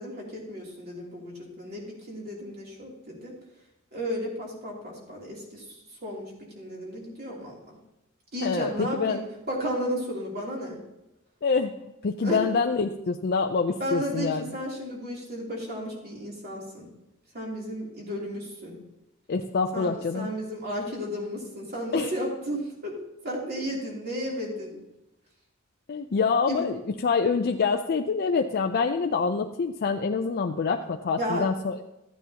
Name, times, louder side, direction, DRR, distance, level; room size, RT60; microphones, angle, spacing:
voice 1, 0.0-3.4 3.9-5.6 6.0-7.6 8.3-9.2 9.5-10.8 12.2-12.4 13.8-16.9 17.3-18.8 19.7-23.0 23.2-24.8 26.5-26.7 31.2-31.5, equal, 45° right, -3 dB, 3.0 m, -33 dB
voice 2, 8.4-9.2 11.4-11.8 12.0-14.5 19.3-20.3 21.9-22.1 25.9-31.9, left 5 dB, 45° left, 4 dB, 0.4 m, -26 dB
14.0 x 9.2 x 2.9 m, 0.92 s
head